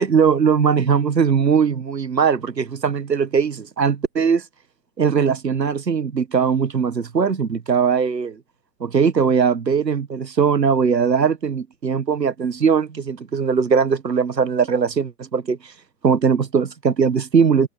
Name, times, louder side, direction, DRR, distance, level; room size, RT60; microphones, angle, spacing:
voice 1, 0.0-4.4 5.0-8.4 8.8-15.7 16.0-17.7, right 6 dB, 85° right, 1.4 m, -20 dB
open air
figure-of-eight pair, 105°, 48 cm